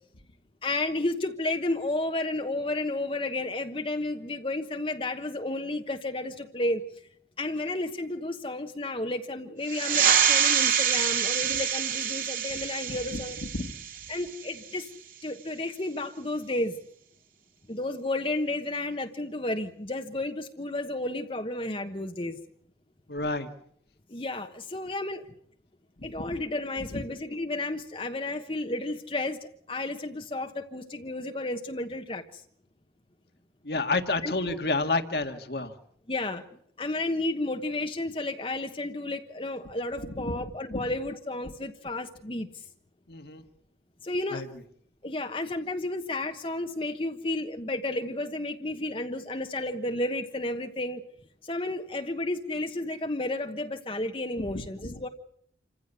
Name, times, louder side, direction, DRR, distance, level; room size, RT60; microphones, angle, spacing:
voice 1, 0.6-6.8 7.4-13.4 14.1-14.9 15.2-16.8 17.7-22.4 24.1-25.3 26.0-32.4 34.2-34.3 36.1-36.4 36.8-42.7 44.0-44.5 45.0-51.0 51.4-55.1, left 2 dB, 30° left, 5 dB, 1.2 m, -32 dB
sound 1, 9.7-14.8, right 8 dB, 50° right, 2.4 m, -26 dB
voice 2, 23.1-23.5 26.2-26.4 26.9-27.0 33.6-35.7 40.2-40.3 40.7-40.8 43.1-43.4 44.3-44.5 54.5-54.9, left 3 dB, 65° left, 7 dB, 1.8 m, -30 dB
27.5 x 15.5 x 8.3 m, 0.65 s
head